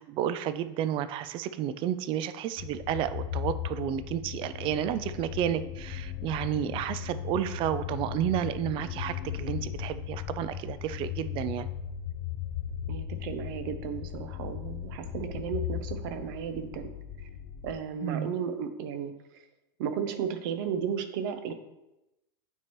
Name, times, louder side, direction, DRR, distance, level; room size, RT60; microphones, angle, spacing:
voice 1, 0.0-11.7 18.0-18.3, right 10 dB, 45° right, 14 dB, 0.4 m, -31 dB
sound 1, 2.6-17.8, left 10 dB, 55° left, 0.5 m, -37 dB
voice 2, 12.9-16.9 17.2-17.3 17.6-19.5 19.8-21.5, right 7 dB, 65° right, 9 dB, 0.8 m, -34 dB
8.9 x 4.4 x 3.1 m, 0.93 s
hypercardioid pair, 105°, 12 cm